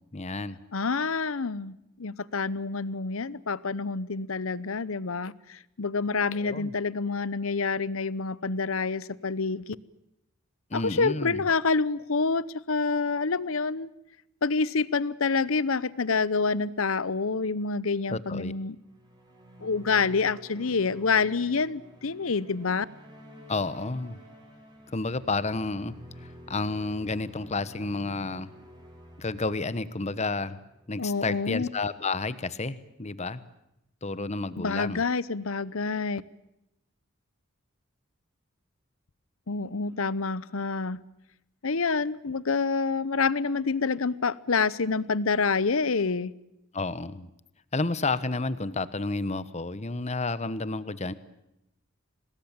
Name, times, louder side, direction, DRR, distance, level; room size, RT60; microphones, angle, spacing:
voice 1, 0.1-0.6 6.3-6.7 10.7-11.5 18.1-18.5 23.5-24.2 24.9-25.9 26.5-28.5 29.2-30.6 30.9-33.5 34.0-35.0 46.7-47.3 47.7-51.1, left 3 dB, 30° left, 15 dB, 1.1 m, -31 dB
voice 2, 0.7-9.8 10.7-13.9 14.4-18.8 19.6-22.9 31.0-31.7 34.6-36.2 39.5-41.0 41.6-46.3, left 4 dB, 75° left, 20 dB, 0.9 m, -27 dB
sound 1, 18.7-31.2, equal, 20° right, 7.8 m, -50 dB
26.5 x 19.5 x 8.9 m, 0.87 s
head